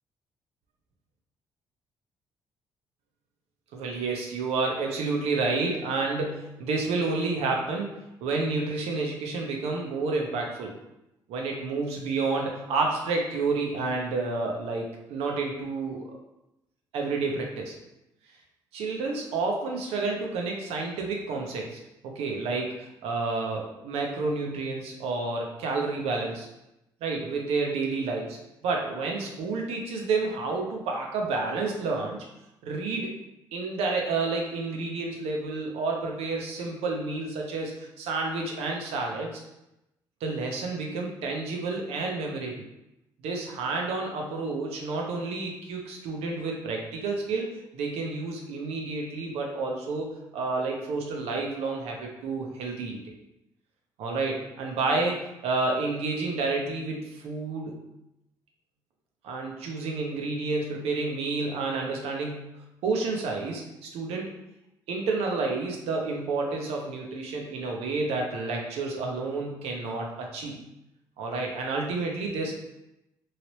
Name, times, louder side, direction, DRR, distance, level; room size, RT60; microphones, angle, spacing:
voice 1, 3.7-10.7 11.3-16.2 16.9-17.8 18.7-26.5 27.0-32.2 32.6-33.1 33.5-39.4 40.2-42.7 43.2-53.1 54.0-57.8 59.2-62.5 62.8-64.3 64.9-70.6 71.2-72.6, right 3 dB, 75° right, 0 dB, 0.7 m, -30 dB
3.1 x 2.8 x 2.9 m, 0.89 s
hypercardioid pair, 55°, 11 cm